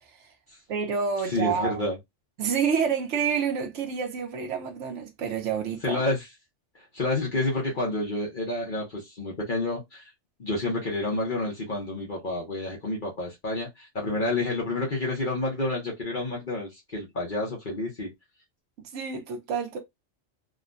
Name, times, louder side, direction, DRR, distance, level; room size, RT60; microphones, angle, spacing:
voice 1, 0.7-1.8 2.4-6.0 18.9-19.8, right 6 dB, 75° right, 1.1 m, -28 dB
voice 2, 1.2-2.0 5.8-6.2 6.9-10.1 10.4-18.1, left 2 dB, 45° left, 1.0 m, -29 dB
3.6 x 2.2 x 2.5 m
omnidirectional pair, 1.3 m